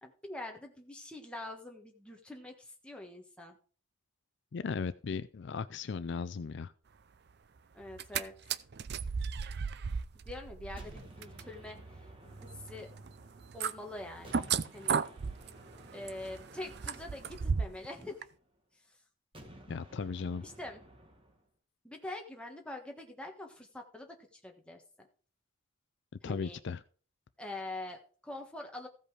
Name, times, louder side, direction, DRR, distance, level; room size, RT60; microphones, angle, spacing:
voice 1, 0.0-3.6 7.7-8.5 10.2-12.1 12.5-12.9 13.5-15.0 15.9-18.3 18.7-19.0 20.4-20.8 21.8-25.1 26.2-26.6 27.4-28.9, left 2 dB, 5° left, 1 dB, 1.4 m, -45 dB
voice 2, 4.5-6.7 19.7-20.4 26.2-26.8, left 5 dB, 55° left, 14 dB, 0.4 m, -36 dB
sound 1, 7.8-8.2 8.5-17.9 18.2-18.3, right 6 dB, 50° right, 0.4 m, -36 dB
sound 2, 10.8-13.8 14.2-18.5 19.3-21.5, right 1 dB, 25° right, 1.6 m, -55 dB
15.0 x 5.3 x 4.8 m, 0.42 s
head